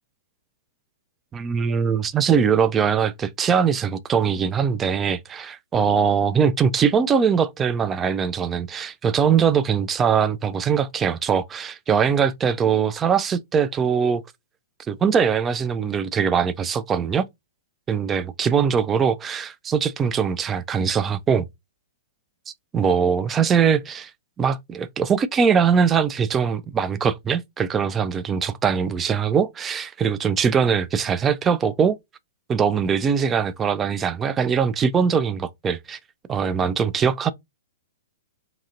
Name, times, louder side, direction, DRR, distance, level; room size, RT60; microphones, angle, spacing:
voice 1, 1.3-14.2 14.9-17.3 17.9-21.4 22.7-24.1 24.4-32.0 32.5-36.0 36.3-37.3, right 7 dB, 15° right, 0.3 m, -21 dB
2.8 x 2.7 x 2.5 m
figure-of-eight pair, 110°, 0 cm